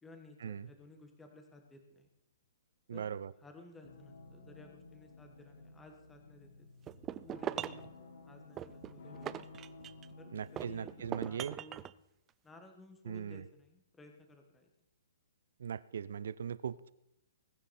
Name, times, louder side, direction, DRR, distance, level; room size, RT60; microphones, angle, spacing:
voice 1, 0.0-2.1 2.9-6.7 7.2-7.9 8.3-9.5 10.2-11.9 12.4-14.7, left 2 dB, 5° left, 4 dB, 1.5 m, -56 dB
voice 2, 2.9-3.3 10.3-11.6 13.1-13.4 15.6-16.9, right 7 dB, 70° right, 18 dB, 0.7 m, -39 dB
sound 1, 3.8-11.2, left 3 dB, 65° left, 3.4 m, -54 dB
sound 2, 6.9-7.9 8.6-10.1 10.6-11.9, right 10 dB, 15° right, 0.4 m, -41 dB
21.0 x 9.8 x 4.3 m, 0.81 s
hypercardioid pair, 165°, 0 cm